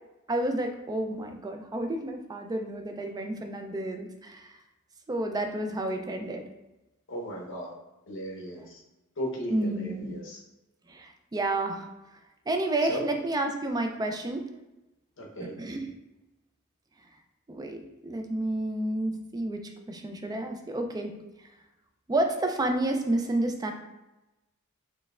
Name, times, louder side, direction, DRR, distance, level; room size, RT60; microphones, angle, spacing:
voice 1, 0.3-4.6 5.1-6.4 8.6-8.7 9.5-10.1 10.9-11.9 12.5-14.5 15.4-15.9 17.5-21.1 22.1-23.7, right 1 dB, 20° right, 5 dB, 0.3 m, -30 dB
voice 2, 7.1-7.7 8.1-8.6 9.2-10.4 12.9-13.0 15.2-15.5, equal, 60° left, -1 dB, 0.8 m, -36 dB
4.2 x 3.2 x 2.3 m, 0.99 s
head